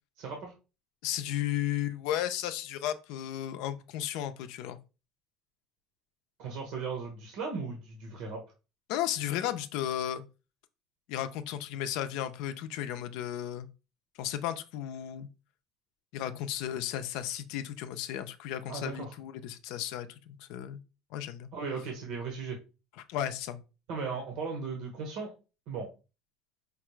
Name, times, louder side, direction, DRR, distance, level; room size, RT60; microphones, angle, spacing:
voice 1, 0.2-0.5 6.4-8.4 18.7-19.1 21.5-22.6 23.9-25.3 25.7-25.9, right 4 dB, 75° right, 1.0 m, -37 dB
voice 2, 1.0-4.8 8.9-10.2 11.1-13.7 14.2-15.3 16.1-20.8 21.1-21.5 23.1-23.6, left 11 dB, 75° left, 0.4 m, -34 dB
5.1 x 2.4 x 3.1 m
cardioid pair, 115°, 0 cm